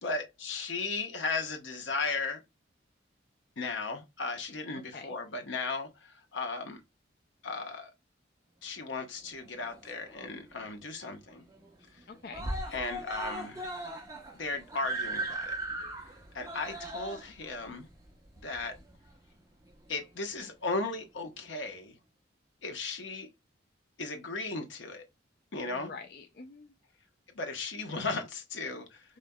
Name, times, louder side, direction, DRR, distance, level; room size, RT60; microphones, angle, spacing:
voice 1, 0.0-2.4 3.6-6.8 7.4-7.9 8.6-11.4 11.9-12.0 12.7-13.7 14.3-15.6 16.3-17.9 18.4-18.8 19.9-22.0 22.6-23.3 24.0-25.0 25.5-25.9 27.3-29.2, left 3 dB, 80° left, 1.1 m, -36 dB
voice 2, 4.7-5.1 12.1-12.5 17.2-17.3 25.7-26.7, left 4 dB, 55° left, 0.5 m, -46 dB
Screaming, 9.4-10.3 10.7-10.8 11.1-11.2 11.5-12.0 12.3-19.1 20.0-20.1, right 2 dB, 20° right, 0.9 m, -38 dB
5.2 x 3.3 x 2.3 m
head